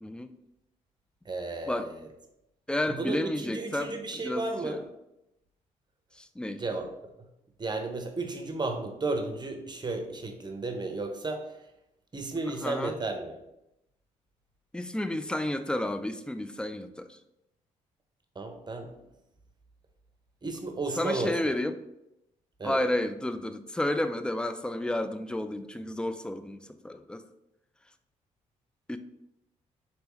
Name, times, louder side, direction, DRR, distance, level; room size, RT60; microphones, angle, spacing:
voice 1, 0.0-0.3 1.7-1.9 2.7-4.8 6.1-6.6 12.6-13.0 14.7-17.2 21.0-21.8 22.6-27.2 28.9-29.0, left 1 dB, 5° left, 9 dB, 0.3 m, -31 dB
voice 2, 1.3-1.9 2.9-4.8 6.5-6.9 7.2-7.3 7.6-11.4 12.1-13.3 18.4-18.9 20.4-21.4 22.6-22.8, right 3 dB, 25° right, 5 dB, 0.7 m, -33 dB
3.3 x 3.0 x 3.1 m, 0.86 s
hypercardioid pair, 50°, 16 cm